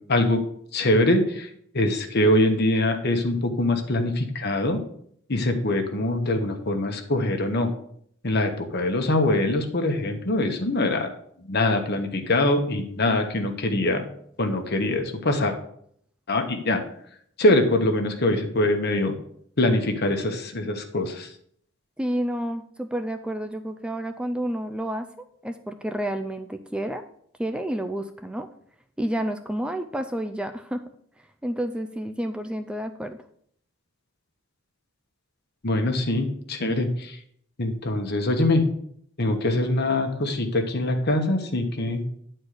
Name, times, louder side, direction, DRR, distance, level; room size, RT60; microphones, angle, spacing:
voice 1, 0.1-0.4 0.7-4.8 5.3-7.7 8.2-11.1 11.4-14.1 14.4-15.5 16.3-16.8 17.4-19.1 19.6-21.3 35.6-37.2 37.6-38.6 39.2-42.0, left 1 dB, 55° left, 5 dB, 1.2 m, -23 dB
voice 2, 22.0-25.1 25.4-27.0 27.4-28.5 29.0-30.8 31.4-33.2, right 1 dB, 5° right, 7 dB, 0.4 m, -30 dB
9.6 x 4.4 x 6.6 m, 0.65 s
head